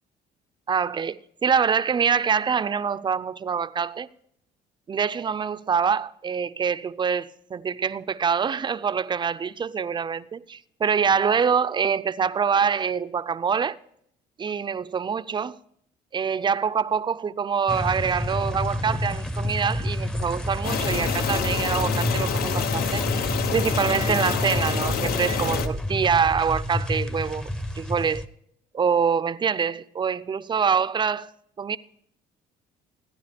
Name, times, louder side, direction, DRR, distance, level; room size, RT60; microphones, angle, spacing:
voice 1, 0.7-4.1 4.9-13.8 14.4-15.6 16.1-27.5 27.8-28.2 28.7-31.3 31.6-31.8, right 6 dB, 25° right, 0.5 m, -25 dB
sound 1, 17.7-28.3, left 1 dB, 5° left, 0.7 m, -29 dB
sound 2, 20.6-25.7, left 8 dB, 65° left, 0.9 m, -28 dB
15.5 x 10.0 x 5.1 m
cardioid pair, 110°, 17 cm